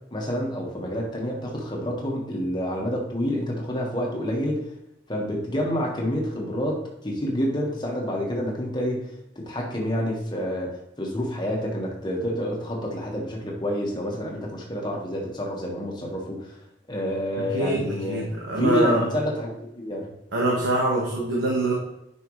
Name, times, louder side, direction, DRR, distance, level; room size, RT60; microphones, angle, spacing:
voice 1, 0.1-4.7 5.1-9.0 9.3-16.5 16.9-18.2 18.6-20.1, equal, 25° left, -1 dB, 1.5 m, -28 dB
voice 2, 17.4-19.1 20.3-21.7, right 1 dB, 85° right, -3 dB, 1.5 m, -24 dB
9.3 x 5.7 x 3.2 m, 0.84 s
head